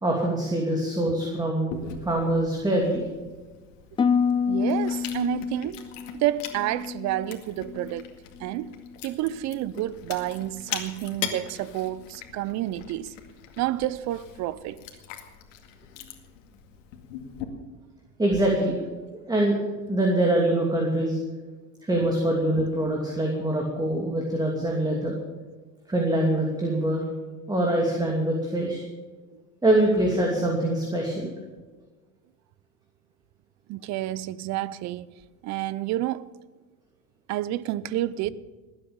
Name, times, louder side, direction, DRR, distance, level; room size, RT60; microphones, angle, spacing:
voice 1, 0.0-3.0 18.2-18.8 19.3-19.6 19.9-21.2 21.8-25.2 25.9-27.1 27.5-28.8 29.6-31.3, right 1 dB, 10° right, 2.7 m, -24 dB
Chewing mastication, 1.7-17.4, left 9 dB, 85° left, 2.2 m, -41 dB
Harp, 4.0-8.1 8.4-8.9 9.4-9.8, left 6 dB, 15° left, 0.4 m, -28 dB
voice 2, 4.5-5.8 6.1-8.0 8.4-8.7 9.0-13.1 13.6-14.8 29.3-29.4 33.7-35.1 35.4-36.3 37.3-38.3, right 14 dB, 45° right, 0.7 m, -29 dB
20.0 x 8.9 x 7.2 m
supercardioid pair, 120°, 37 cm